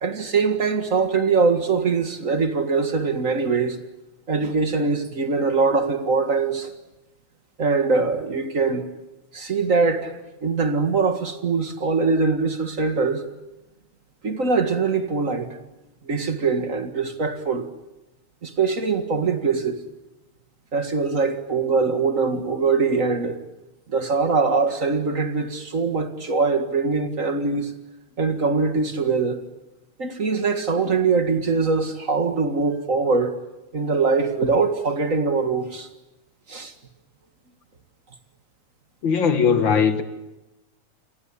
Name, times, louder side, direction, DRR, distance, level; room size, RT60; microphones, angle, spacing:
voice 1, 0.0-3.8 4.3-6.7 7.6-8.8 9.3-10.1 10.4-13.2 14.2-15.6 16.0-17.7 18.4-19.8 20.7-23.4 23.9-27.7 28.2-29.4 30.0-33.3 33.7-35.9 36.5-36.7, right 4 dB, 30° right, 1.8 m, -22 dB
voice 2, 39.0-40.0, left 6 dB, 45° left, 2.2 m, -19 dB
29.0 x 23.0 x 8.7 m
omnidirectional pair, 3.3 m